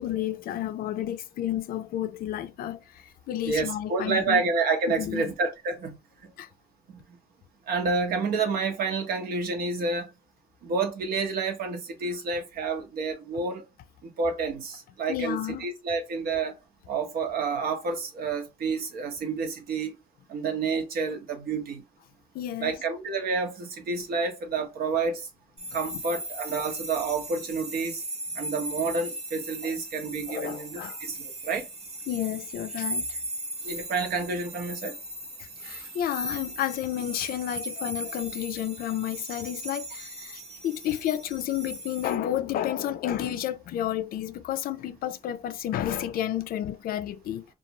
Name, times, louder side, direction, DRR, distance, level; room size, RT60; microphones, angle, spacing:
voice 1, 0.0-4.4 4.9-5.3 6.4-6.5 15.1-15.7 22.3-22.8 25.7-25.8 29.6-29.8 30.3-31.0 32.1-33.2 35.4-47.5, left 11 dB, 60° left, 0.4 m, -31 dB
voice 2, 3.4-6.0 7.7-10.1 10.6-13.7 14.0-16.5 16.9-19.9 20.3-21.8 22.6-25.3 25.7-28.0 28.4-31.2 31.4-31.7 33.6-34.9, right 4 dB, 65° right, 0.9 m, -29 dB
sound 1, 25.6-42.1, right 1 dB, 35° right, 0.7 m, -38 dB
2.5 x 2.4 x 2.8 m
cardioid pair, 110°, 17 cm